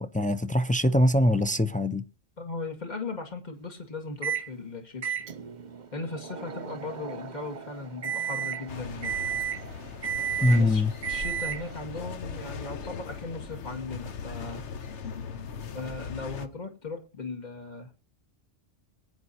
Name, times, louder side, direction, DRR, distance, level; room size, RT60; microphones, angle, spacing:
voice 1, 0.0-2.0 10.4-10.9, left 1 dB, 10° left, 0.3 m, -23 dB
voice 2, 2.4-5.1 5.9-9.2 10.5-14.6 15.7-17.9, left 3 dB, 35° left, 2.2 m, -38 dB
Microwave oven, 4.2-4.5 5.0-11.8, right 8 dB, 45° right, 0.9 m, -34 dB
sound 1, 8.7-16.5, left 5 dB, 75° left, 1.3 m, -39 dB
22.0 x 9.5 x 2.8 m
omnidirectional pair, 1.2 m